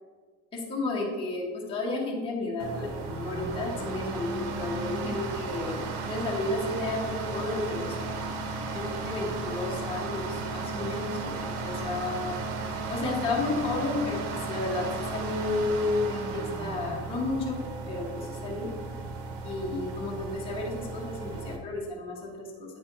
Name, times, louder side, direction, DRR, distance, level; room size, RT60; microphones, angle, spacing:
voice 1, 0.5-8.0 8.7-12.4 12.9-14.2 14.5-17.6 17.8-18.7 19.4-22.8, left 2 dB, 15° left, -5 dB, 1.3 m, -32 dB
sound 1, 2.6-21.6, right 3 dB, 80° right, 1.2 m, -35 dB
9.2 x 4.3 x 4.6 m, 1.4 s
cardioid pair, 160°, 34 cm